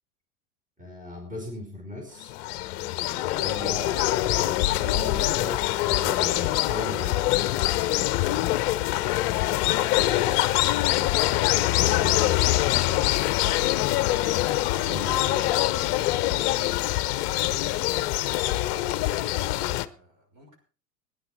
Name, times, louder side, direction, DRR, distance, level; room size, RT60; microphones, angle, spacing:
voice 1, 0.8-2.3 3.4-3.9 4.2-7.3 11.9-12.2 14.8-15.5, left 1 dB, 15° right, 1 dB, 5.0 m, -37 dB
sound 1, 2.2-19.9, left 16 dB, 40° left, 0.8 m, -24 dB
voice 2, 3.4-3.8 10.1-10.9 11.8-14.4 17.5-18.5 19.1-20.6, right 1 dB, 40° right, 2 dB, 5.8 m, -50 dB
18.0 x 10.5 x 4.6 m, 0.38 s
figure-of-eight pair, 90°, 47 cm